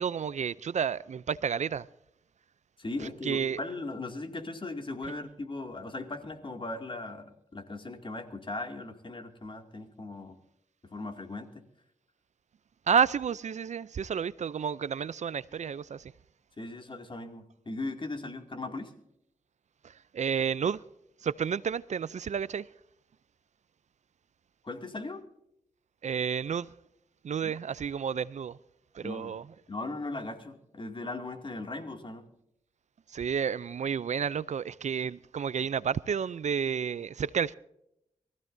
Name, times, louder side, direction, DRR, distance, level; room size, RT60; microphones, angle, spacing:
voice 1, 0.0-1.9 3.2-3.6 12.9-16.1 20.1-20.8 21.2-22.7 26.0-26.7 27.2-28.6 28.9-29.4 33.1-37.6, right 7 dB, 60° right, 0.5 m, -30 dB
voice 2, 2.8-10.4 10.8-11.6 16.6-18.9 24.6-25.2 27.4-27.6 29.0-29.4 29.7-32.3, left 2 dB, 40° left, 2.4 m, -38 dB
23.5 x 15.0 x 2.7 m
cardioid pair, 55°, 13 cm